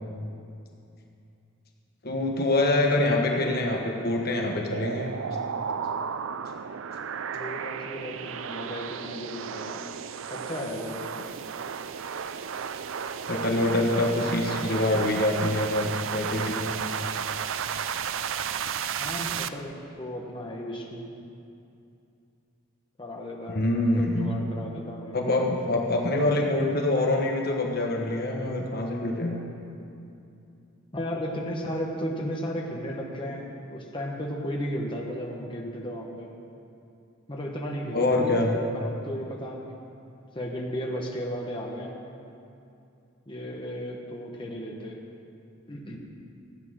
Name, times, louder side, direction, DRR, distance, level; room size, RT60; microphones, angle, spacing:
voice 1, 2.0-5.1 13.3-16.7 23.5-24.3 25.1-29.4 37.9-38.5, left 2 dB, 50° left, 1 dB, 1.3 m, -25 dB
sound 1, 4.7-19.5, right 7 dB, 70° right, 0.5 m, -33 dB
voice 2, 7.3-9.8 10.3-11.4 14.6-14.8 19.0-21.1 23.0-23.6 24.0-25.2 30.9-36.3 37.3-38.4 38.7-39.7 40.3-41.9 43.3-45.0 45.7-46.0, equal, 25° left, -1 dB, 1.4 m, -34 dB
15.0 x 8.8 x 6.4 m, 2.7 s
head